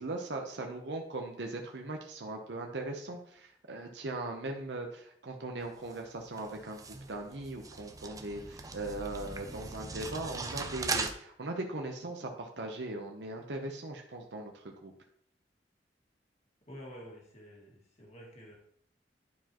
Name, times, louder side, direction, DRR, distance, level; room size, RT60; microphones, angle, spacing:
voice 1, 0.0-6.8 7.1-14.9, right 2 dB, 80° right, 2 dB, 0.8 m, -39 dB
sound 1, 5.6-11.1, right 4 dB, 20° right, 0.5 m, -39 dB
voice 2, 16.7-18.6, equal, 40° left, -2 dB, 1.9 m, -49 dB
11.0 x 4.7 x 3.0 m, 0.67 s
head